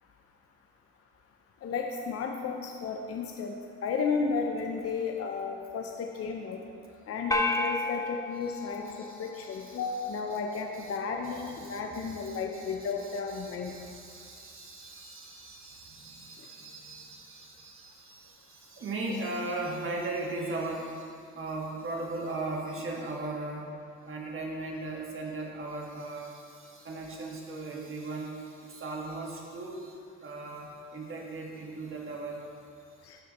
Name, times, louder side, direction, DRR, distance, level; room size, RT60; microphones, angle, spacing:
voice 1, 1.6-3.5 3.8-6.6 7.1-8.9 9.2-13.7 33.0-33.2, left 5 dB, 50° left, 2 dB, 0.7 m, -33 dB
sound 1, 7.3-9.8, left 2 dB, 10° left, 0.8 m, -32 dB
voice 2, 8.4-11.0 11.2-23.8 24.0-32.5, right 2 dB, 45° right, -1 dB, 1.5 m, -38 dB
12.0 x 4.9 x 3.0 m, 2.3 s
supercardioid pair, 70°, 30 cm